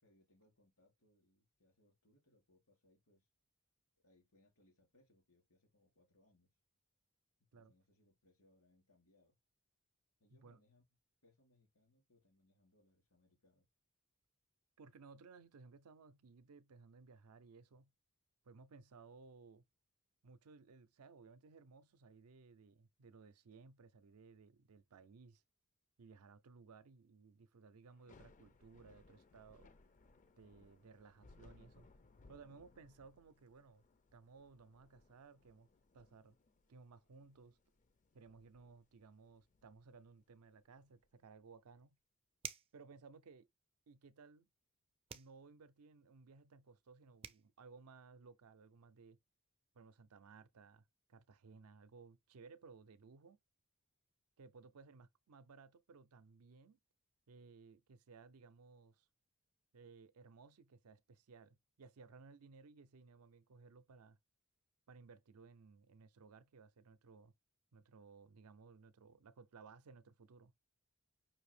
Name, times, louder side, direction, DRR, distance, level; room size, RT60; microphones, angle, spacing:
voice 1, 0.0-3.3 4.0-6.6 7.5-9.4 10.2-10.8 11.2-13.7, left 1 dB, 80° left, 3.3 m, -73 dB
voice 2, 14.8-17.9 18.4-19.6 20.2-25.4 26.0-29.7 30.4-31.9 32.3-33.8 34.1-35.7 35.9-36.4 36.7-37.6 38.1-42.0 42.7-43.5 43.9-44.5 45.1-49.2 49.7-53.4 54.4-56.8 57.3-59.1 59.7-64.2 64.9-67.3 67.7-70.5, right 4 dB, 80° right, 0.5 m, -60 dB
Thunder / Rain, 27.9-41.1, left 3 dB, 35° left, 0.4 m, -67 dB
sound 1, 42.4-42.8 45.1-45.4 46.9-47.0 47.2-47.5, right 8 dB, 25° right, 0.4 m, -48 dB
5.6 x 2.7 x 3.2 m
head